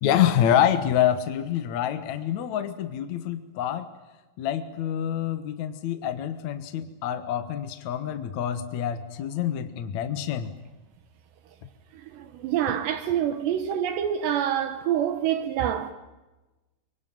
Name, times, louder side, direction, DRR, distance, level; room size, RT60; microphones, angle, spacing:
voice 1, 0.0-3.9 4.4-10.5, left 10 dB, 70° left, 1.7 m, -26 dB
voice 2, 11.9-15.9, right 10 dB, 75° right, 3.1 m, -26 dB
24.5 x 24.0 x 9.2 m
omnidirectional pair, 5.3 m